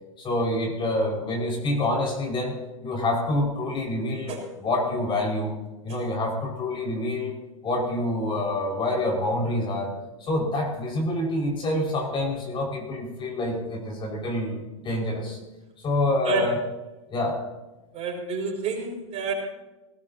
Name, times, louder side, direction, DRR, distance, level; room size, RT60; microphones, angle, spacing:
voice 1, 0.2-5.5 5.8-7.4 7.6-9.9 10.2-15.4 15.8-16.6 17.1-17.4, left 1 dB, 30° left, 0 dB, 5.2 m, -27 dB
voice 2, 17.9-19.3, right 4 dB, 35° right, 0 dB, 5.4 m, -29 dB
19.0 x 19.0 x 2.8 m, 1.1 s
hypercardioid pair, 105°, 18 cm